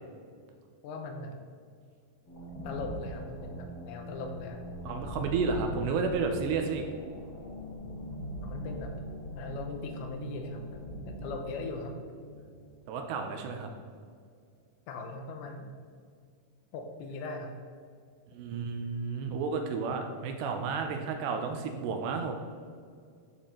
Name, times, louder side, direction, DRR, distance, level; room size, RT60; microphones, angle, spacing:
voice 1, 0.8-1.3 2.6-4.6 8.4-8.9 9.4-11.9 14.9-15.8 16.7-17.5 18.5-18.7, left 3 dB, 80° left, 4 dB, 3.2 m, -40 dB
sound 1, 2.2-13.3, equal, 40° left, 2.5 m, -41 dB
voice 2, 4.8-6.8 12.9-13.7 18.3-22.3, right 5 dB, 80° right, 5 dB, 2.8 m, -32 dB
13.0 x 7.4 x 3.8 m, 2.2 s
omnidirectional pair, 5.2 m